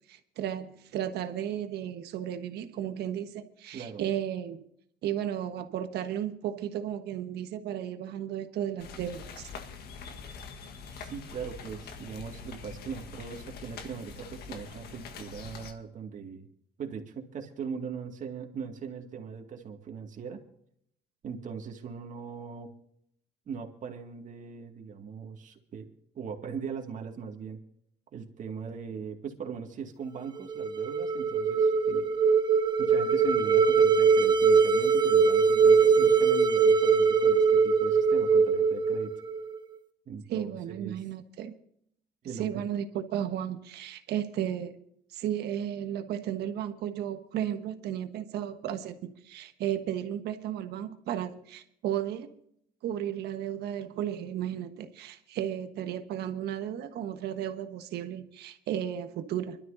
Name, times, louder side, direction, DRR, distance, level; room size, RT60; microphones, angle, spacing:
voice 1, 0.1-4.6 5.0-9.5 40.3-41.5 42.3-44.8 45.1-52.3 52.8-59.6, right 10 dB, 75° right, 8 dB, 1.4 m, -34 dB
sound 1, 8.8-15.7, left 5 dB, 70° left, 1.6 m, -44 dB
voice 2, 11.0-16.5 16.8-20.4 21.2-22.7 23.5-25.9 26.1-27.6 28.1-32.1 32.8-39.1 40.1-41.0 42.2-42.5, right 6 dB, 50° right, 3 dB, 2.3 m, -40 dB
sound 2, 30.4-39.6, right 5 dB, 25° right, 0.9 m, -22 dB
25.0 x 12.5 x 2.8 m, 0.70 s
cardioid pair, 110°, 17 cm